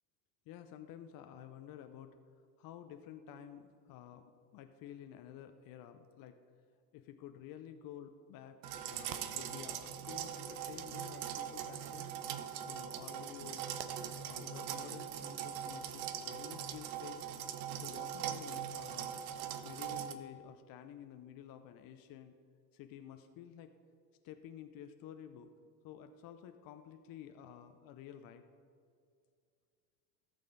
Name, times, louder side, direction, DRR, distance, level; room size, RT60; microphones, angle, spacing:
voice 1, 0.5-2.1 2.6-6.4 6.9-8.6 8.8-12.1 12.6-13.6 14.2-17.2 17.8-19.1 19.6-22.3 22.7-23.8 24.2-25.5 25.8-28.4, left 10 dB, 50° left, 7 dB, 0.7 m, -51 dB
sound 1, 8.6-20.1, right 9 dB, 65° right, 0.9 m, -41 dB
14.5 x 6.6 x 4.0 m, 2.2 s
hypercardioid pair, 85°, 46 cm